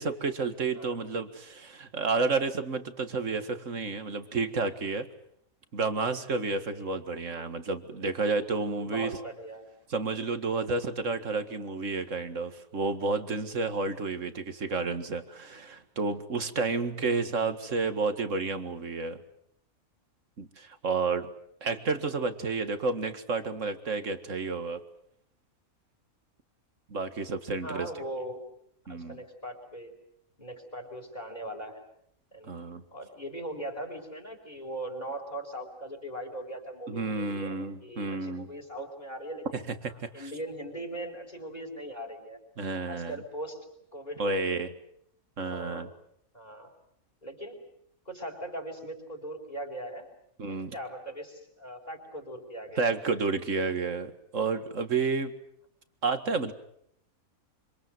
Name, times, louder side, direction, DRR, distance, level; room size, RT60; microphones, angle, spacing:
voice 1, 0.0-5.1 5.7-9.2 9.9-19.2 20.4-21.3 21.6-24.8 26.9-27.9 28.9-29.2 32.5-32.8 36.9-38.5 39.5-40.2 42.6-43.2 44.2-44.7 45.4-45.9 50.4-50.7 52.8-55.4 56.0-56.5, right 4 dB, 60° right, 9 dB, 2.2 m, -31 dB
voice 2, 8.8-9.7 17.6-17.9 27.6-28.4 28.9-29.9 30.4-31.8 32.3-32.5 32.9-39.5 40.1-42.4 42.9-43.7 43.9-44.6 45.4-45.9 46.3-46.7 47.2-47.6 48.0-50.1 50.4-52.9, right 1 dB, 25° left, 3 dB, 5.0 m, -40 dB
26.5 x 26.0 x 7.9 m, 0.72 s
omnidirectional pair, 1.5 m